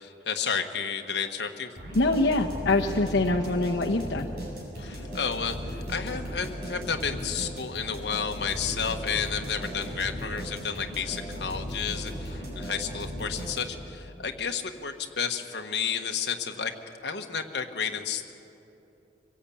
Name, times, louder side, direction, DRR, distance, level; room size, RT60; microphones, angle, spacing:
voice 1, 0.0-1.7 4.8-16.7 17.0-18.3, left 6 dB, 70° left, 4 dB, 1.4 m, -31 dB
sound 1, 1.8-13.9, equal, 55° right, 7.6 m, -37 dB
voice 2, 1.9-4.3, left 2 dB, 85° left, 1 dB, 1.0 m, -24 dB
25.0 x 16.5 x 8.6 m, 2.9 s
head